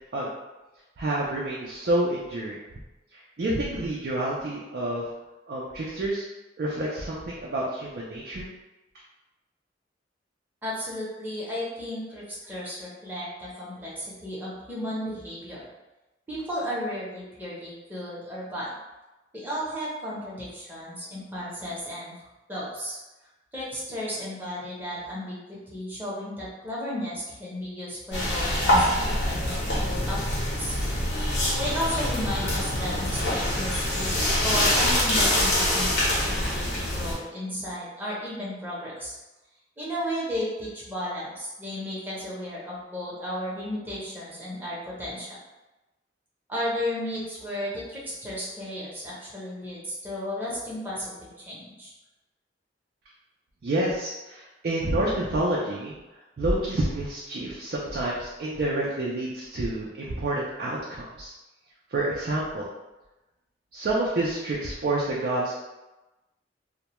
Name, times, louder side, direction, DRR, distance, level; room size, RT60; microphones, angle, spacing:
voice 1, 1.0-2.6 3.1-5.1 5.5-6.2 6.6-8.5 53.6-56.0 56.4-61.3 61.9-62.7 63.7-65.5, right 1 dB, 55° right, -5 dB, 0.4 m, -28 dB
voice 2, 10.6-15.6 16.3-18.7 19.3-22.1 22.5-23.0 23.5-30.8 31.6-34.1 34.4-39.1 39.8-45.4 46.5-51.9, equal, 10° right, -7 dB, 0.7 m, -34 dB
sound 1, 28.1-37.1, left 1 dB, 75° left, 0.8 m, -25 dB
2.2 x 2.1 x 2.9 m, 1.0 s
head